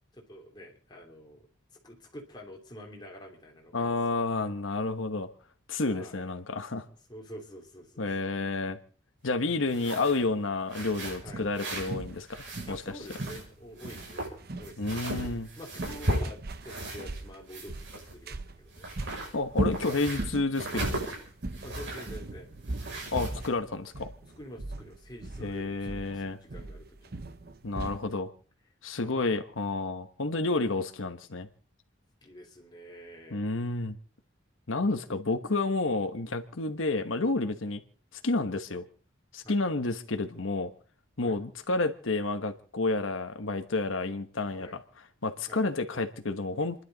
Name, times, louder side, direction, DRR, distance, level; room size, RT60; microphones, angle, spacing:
voice 1, 0.1-1.5 1.8-4.0 5.9-6.4 7.1-8.0 11.2-11.4 12.6-15.0 15.6-18.9 21.6-22.5 24.4-27.2 29.0-29.3 32.2-33.5 39.4-39.6 41.2-41.4 44.6-44.8 45.5-45.6, equal, 20° left, 3.1 m, -47 dB
voice 2, 3.7-5.3 5.7-6.9 8.0-8.8 9.2-12.8 14.8-15.5 19.3-21.1 23.1-24.1 25.4-26.4 27.6-28.3 28.8-31.5 33.3-34.0 34.7-37.8 38.2-38.9 39.3-40.7 41.2-44.8 45.2-46.8, left 3 dB, 85° left, 1.2 m, -30 dB
sound 1, 9.6-10.2 10.7-12.0 12.2-13.5 13.8-17.2 17.5-18.4 18.7-22.2 22.7-23.5, right 1 dB, 70° right, 6.5 m, -36 dB
sound 2, 11.3-28.1, right 1 dB, 50° right, 0.8 m, -39 dB
29.5 x 11.5 x 3.9 m
head